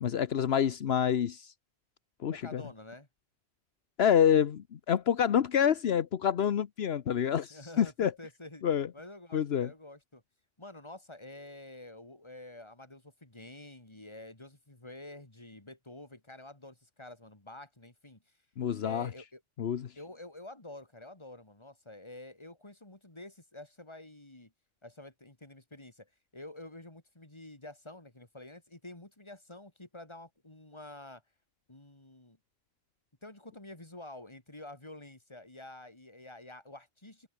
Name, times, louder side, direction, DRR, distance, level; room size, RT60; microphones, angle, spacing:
voice 1, 0.0-1.5 2.2-2.6 4.0-8.1 8.6-8.9 9.3-9.7 18.6-19.1 19.6-19.9, left 8 dB, 75° left, 1.1 m, -27 dB
voice 2, 2.3-3.1 7.5-8.7 8.9-10.2 10.6-18.2 18.8-19.4 19.9-24.5 24.8-31.2 31.7-32.4 33.2-37.3, left 2 dB, 25° left, 3.1 m, -48 dB
omnidirectional pair, 1.1 m